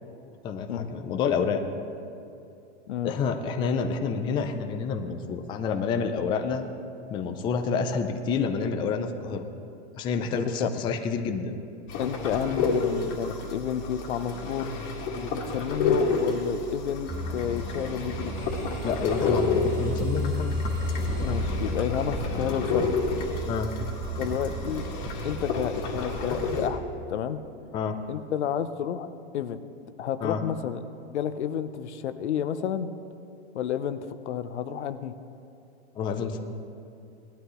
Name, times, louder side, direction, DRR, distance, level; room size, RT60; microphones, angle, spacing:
voice 1, 0.4-1.6 3.0-6.7 7.1-9.4 9.9-11.5 18.8-20.6 23.5-23.7 27.7-28.0 30.2-30.4 36.0-36.4, left 5 dB, 15° left, 5 dB, 0.5 m, -28 dB
voice 2, 10.3-10.7 12.0-14.7 15.2-18.3 21.2-23.0 24.2-24.8 25.2-26.8 27.1-27.4 28.1-29.6 30.0-30.8 31.1-32.9 33.5-35.1, left 9 dB, 75° left, 11 dB, 0.9 m, -31 dB
sound 1, 11.9-26.7, left 4 dB, 40° left, 2.1 m, -30 dB
sound 2, 17.1-26.5, left 1 dB, 10° right, 1.1 m, -33 dB
19.0 x 11.5 x 3.1 m, 2.7 s
hypercardioid pair, 145°, 34 cm